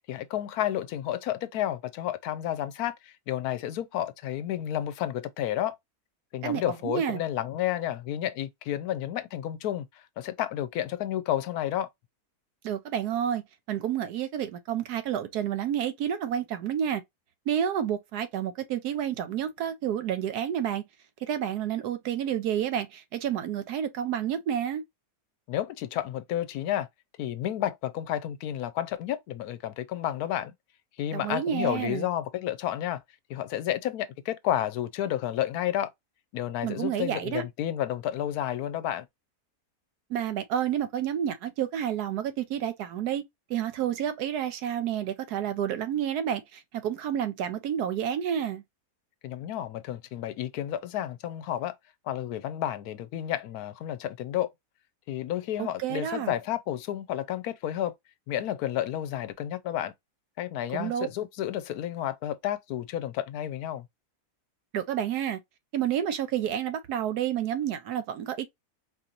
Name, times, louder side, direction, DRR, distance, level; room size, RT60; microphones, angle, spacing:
voice 1, 0.1-5.8 6.3-11.9 25.5-26.9 27.2-30.5 31.0-33.0 33.3-35.9 36.3-39.1 49.2-51.7 52.1-54.5 55.1-57.9 58.3-59.9 60.4-63.9, left 12 dB, 80° left, 1.1 m, -31 dB
voice 2, 6.4-7.2 12.6-13.4 13.7-17.0 17.5-20.8 21.3-24.8 31.1-32.1 36.6-37.4 40.1-43.2 43.5-48.6 55.6-56.3 60.7-61.1 64.7-65.4 65.7-68.5, right 9 dB, 90° right, 1.2 m, -30 dB
4.2 x 2.8 x 2.4 m
omnidirectional pair, 1.6 m